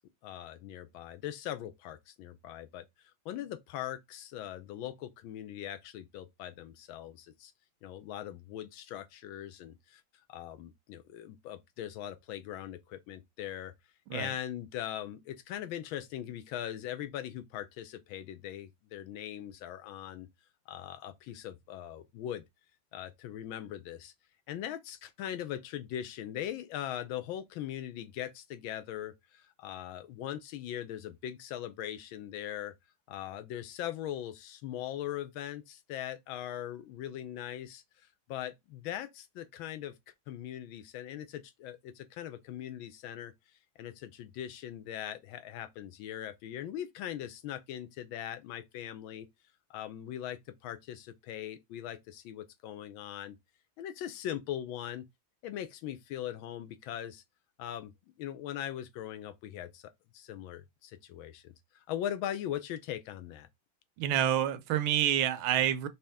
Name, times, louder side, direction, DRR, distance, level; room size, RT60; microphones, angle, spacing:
voice 1, 0.2-2.8 3.2-7.5 7.8-10.0 10.3-13.7 14.1-20.3 20.7-22.4 22.9-24.1 24.5-32.7 33.1-37.8 38.3-39.9 40.3-43.3 43.8-49.3 49.7-53.4 53.8-55.0 55.4-57.2 57.6-57.9 58.2-59.8 60.1-63.5, left 11 dB, 85° left, 1.4 m, -40 dB
voice 2, 64.0-65.9, right 11 dB, 85° right, 1.4 m, -28 dB
5.3 x 2.9 x 3.4 m
omnidirectional pair, 2.2 m